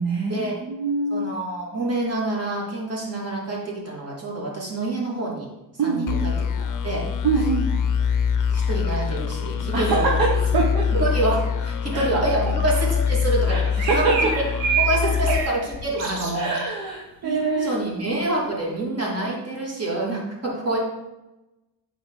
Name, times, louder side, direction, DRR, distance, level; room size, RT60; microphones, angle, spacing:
voice 1, 0.0-1.3 5.8-6.2 7.2-7.7 9.7-10.9 11.9-12.1 13.5-14.2 15.3-15.4 16.3-17.8, right 4 dB, 55° right, -1 dB, 1.1 m, -24 dB
voice 2, 1.1-5.5 5.8-6.3 6.6-7.1 8.5-10.2 11.0-14.3 14.8-16.5 17.2-20.8, right 2 dB, 35° right, -3 dB, 2.3 m, -27 dB
sound 1, 6.1-16.4, left 7 dB, 50° left, 0.6 m, -24 dB
sound 2, 13.8-15.6 16.0-16.7, right 7 dB, 90° right, 1.3 m, -26 dB
7.1 x 4.8 x 3.7 m, 0.98 s
cardioid pair, 105°, 41 cm